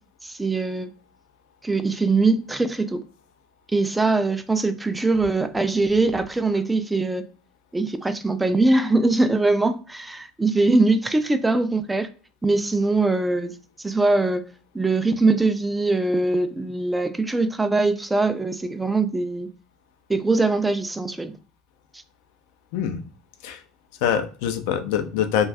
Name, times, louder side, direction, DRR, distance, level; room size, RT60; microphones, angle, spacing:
voice 1, 0.2-0.9 1.6-3.0 3.7-7.3 7.7-12.1 12.4-14.4 14.7-19.5 20.1-21.3, right 3 dB, 10° right, 0.3 m, -22 dB
voice 2, 24.0-25.5, left 9 dB, 75° left, 0.5 m, -24 dB
2.5 x 2.2 x 3.3 m
supercardioid pair, 115°, 0 cm